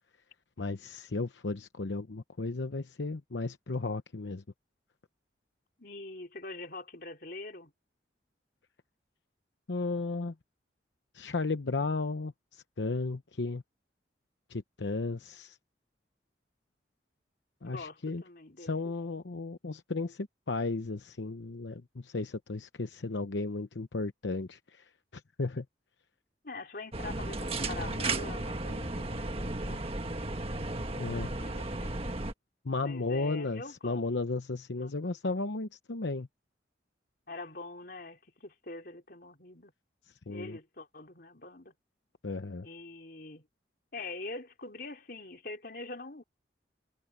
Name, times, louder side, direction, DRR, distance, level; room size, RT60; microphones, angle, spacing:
voice 1, 0.6-4.4 9.7-10.3 11.1-13.6 14.5-15.6 17.6-18.2 18.6-25.6 31.0-31.3 32.6-36.3 40.3-40.6 42.2-42.7, left 3 dB, 85° left, 0.9 m, -34 dB
voice 2, 5.8-7.7 17.6-18.7 26.4-29.9 31.0-32.0 32.8-34.0 34.8-35.0 37.3-39.7 40.3-41.7 42.6-43.4 43.9-46.2, left 2 dB, 55° left, 3.6 m, -44 dB
Elevator Standard Ride, 26.9-32.3, right 2 dB, 35° right, 1.5 m, -34 dB
head